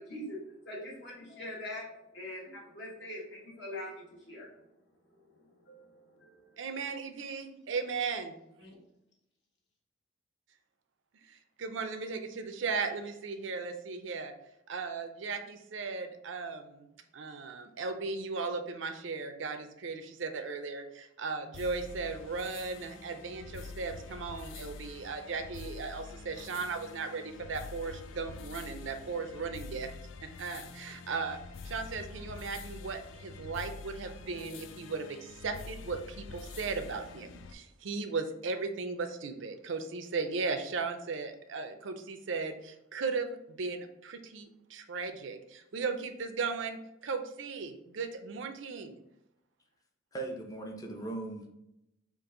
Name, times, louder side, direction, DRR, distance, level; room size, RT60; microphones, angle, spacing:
voice 1, 0.0-4.5 5.1-6.6 8.6-8.7, left 1 dB, 60° left, -4 dB, 1.6 m, -44 dB
voice 2, 6.6-8.4 11.3-14.3 14.7-29.9 30.4-31.4 31.6-49.0, right 4 dB, 70° right, 7 dB, 0.5 m, -37 dB
sound 1, 21.5-37.5, left 4 dB, 75° left, 0.4 m, -46 dB
voice 3, 50.1-51.5, right 2 dB, 20° left, 2 dB, 0.7 m, -38 dB
5.3 x 2.5 x 3.8 m, 0.84 s
head